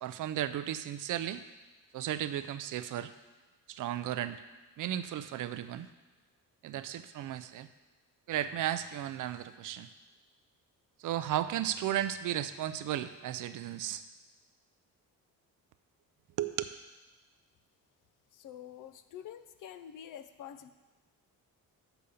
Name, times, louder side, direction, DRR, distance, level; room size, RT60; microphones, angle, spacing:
voice 1, 0.0-1.4 1.9-3.1 3.7-4.4 4.8-5.9 6.6-7.7 8.3-9.9 11.0-14.0 16.4-16.6, right 11 dB, 60° right, 11 dB, 0.4 m, -34 dB
voice 2, 18.3-20.7, left 9 dB, 55° left, 11 dB, 0.5 m, -47 dB
6.9 x 5.1 x 7.0 m, 1.3 s
cardioid pair, 180°, 37 cm